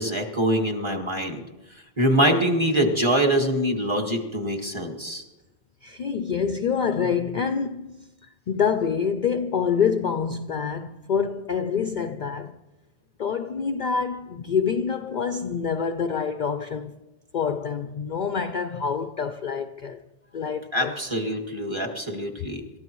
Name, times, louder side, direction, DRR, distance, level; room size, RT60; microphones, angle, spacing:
voice 1, 0.0-1.4 2.0-5.2 20.7-22.6, right 1 dB, 25° right, 1.8 m, -24 dB
voice 2, 5.8-8.1 8.5-12.6 13.2-17.0 17.3-20.0 20.3-21.1, left 6 dB, 50° left, 0.6 m, -26 dB
27.5 x 13.0 x 3.1 m
omnidirectional pair, 1.2 m